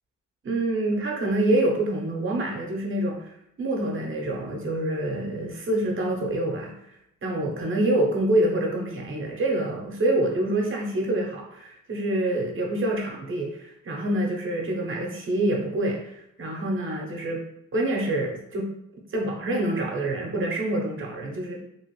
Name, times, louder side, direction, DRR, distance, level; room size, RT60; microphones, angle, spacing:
voice 1, 0.4-6.9 7.2-17.4 17.7-18.7 19.1-21.6, right 1 dB, 45° right, 0 dB, 0.9 m, -26 dB
3.0 x 2.4 x 3.1 m, 0.79 s
cardioid pair, 90°, 30 cm